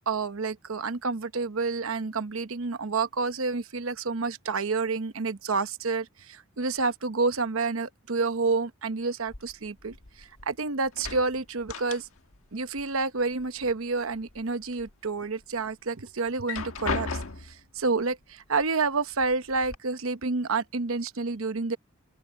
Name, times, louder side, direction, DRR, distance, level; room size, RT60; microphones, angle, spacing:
voice 1, 0.0-12.1 12.5-21.8, right 4 dB, 80° right, 0.9 m, -29 dB
sound 1, 9.3-10.5 10.8-12.5 12.7-13.7 14.1-14.9 15.4-15.5 16.3-17.7 18.6-18.7 19.1-19.8, left 4 dB, 85° left, 1.5 m, -36 dB
open air
head